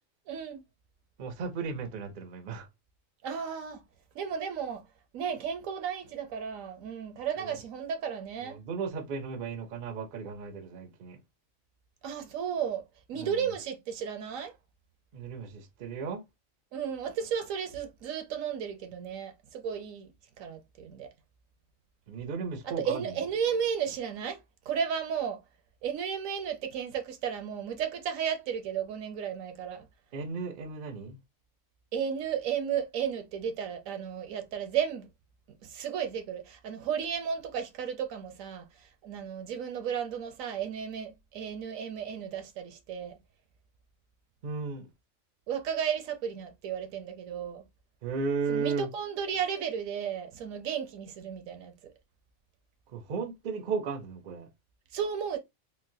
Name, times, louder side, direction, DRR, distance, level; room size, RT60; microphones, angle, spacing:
voice 1, 0.3-0.6 3.2-3.8 4.1-4.8 5.1-8.6 12.0-12.8 13.1-14.5 16.7-20.1 20.4-21.1 22.6-24.4 24.7-25.4 25.8-29.9 31.9-35.1 35.6-43.2 45.5-47.6 48.5-51.7 54.9-55.4, right 8 dB, 75° right, 1.0 m, -34 dB
voice 2, 1.2-2.7 7.4-7.5 8.4-11.2 13.1-13.5 15.1-16.2 22.1-23.0 30.1-31.2 44.4-44.9 48.0-48.9 52.9-54.5, right 5 dB, 55° right, 0.6 m, -35 dB
3.9 x 2.2 x 2.5 m
omnidirectional pair, 1.4 m